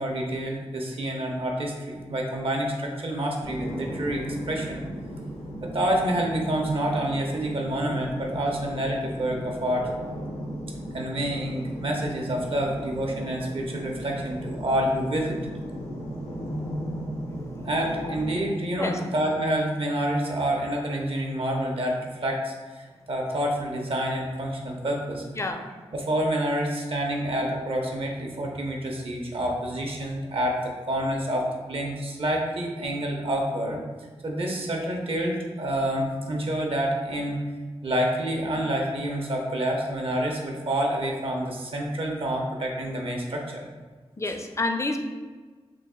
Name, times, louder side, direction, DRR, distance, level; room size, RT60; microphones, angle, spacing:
voice 1, 0.0-4.8 5.6-9.9 10.9-15.4 17.6-25.4 25.9-33.8 34.2-37.4 37.8-43.6, right 1 dB, 60° right, 0 dB, 0.6 m, -28 dB
sound 1, 3.4-18.4, equal, 75° left, 0.7 m, -36 dB
voice 2, 44.2-45.0, left 2 dB, 25° left, 5 dB, 0.4 m, -28 dB
3.1 x 2.1 x 3.6 m, 1.4 s
cardioid pair, 45°, 11 cm